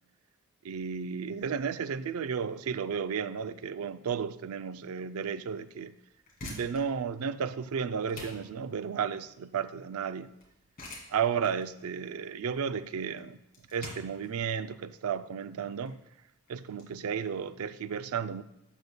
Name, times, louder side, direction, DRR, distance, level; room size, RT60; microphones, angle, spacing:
voice 1, 0.6-6.0 6.4-10.3 11.1-13.4 13.7-16.0 16.5-18.4, right 7 dB, 85° right, 0.4 m, -33 dB
sound 1, 6.1-16.8, left 2 dB, 45° left, 2.5 m, -48 dB
12.0 x 7.9 x 2.2 m
head